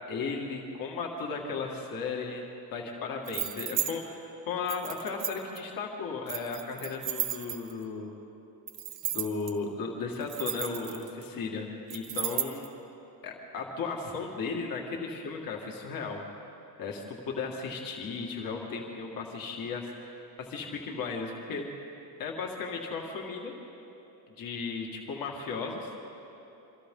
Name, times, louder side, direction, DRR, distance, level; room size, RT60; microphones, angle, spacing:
voice 1, 0.1-2.4 2.7-8.1 9.1-12.7 13.2-16.2 16.8-21.7 22.2-23.5 24.4-26.0, left 4 dB, 50° left, 0 dB, 2.2 m, -35 dB
sound 1, 3.3-3.9 4.7-5.6 6.3-7.8 8.7-9.5 10.1-11.2 11.9-12.7, right 11 dB, 65° right, 1.8 m, -33 dB
27.5 x 24.5 x 3.9 m, 2.9 s
cardioid pair, 170°, 43 cm